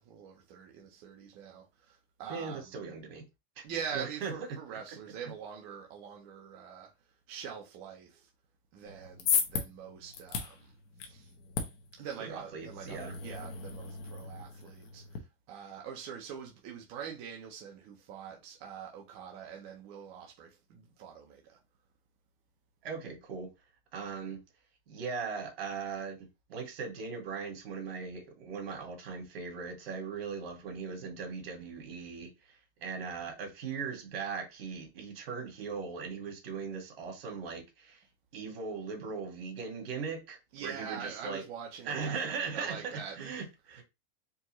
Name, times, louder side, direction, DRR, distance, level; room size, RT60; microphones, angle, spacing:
voice 1, 0.0-2.8 3.6-6.9 7.3-8.3 8.7-10.7 11.0-11.3 12.0-21.6 40.5-43.4 43.7-43.8, right 7 dB, 30° right, 0.7 m, -44 dB
voice 2, 2.3-3.3 3.6-3.7 3.9-4.3 12.2-13.1 22.8-23.5 23.9-24.4 24.9-32.5 32.8-38.0 38.3-41.4 41.8-43.8, right 5 dB, 70° right, 1.9 m, -39 dB
sound 1, 8.9-15.2, left 6 dB, 40° left, 0.9 m, -36 dB
4.6 x 2.5 x 3.0 m
supercardioid pair, 170°, 31 cm